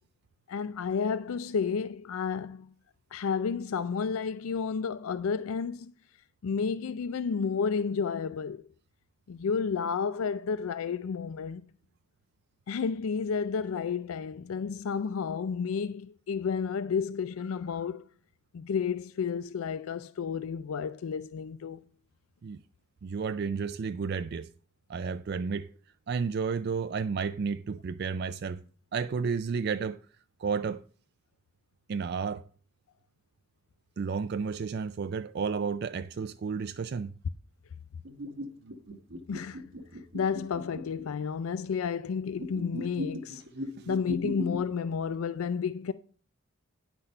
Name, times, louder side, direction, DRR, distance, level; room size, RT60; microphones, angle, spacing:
voice 1, 0.5-2.7 3.1-5.9 6.4-8.6 9.3-11.6 12.7-18.0 18.5-21.8 39.3-39.7 40.1-43.4 43.9-45.9, left 6 dB, 80° left, 0.4 m, -31 dB
voice 2, 23.0-24.5 24.9-25.7 26.1-28.6 28.9-30.0 30.4-30.8 31.9-32.4 34.0-37.1, right 5 dB, 50° right, 0.3 m, -32 dB
sound 1, 38.1-41.1 42.3-44.6, equal, 65° right, 1.2 m, -38 dB
9.9 x 6.0 x 5.4 m
head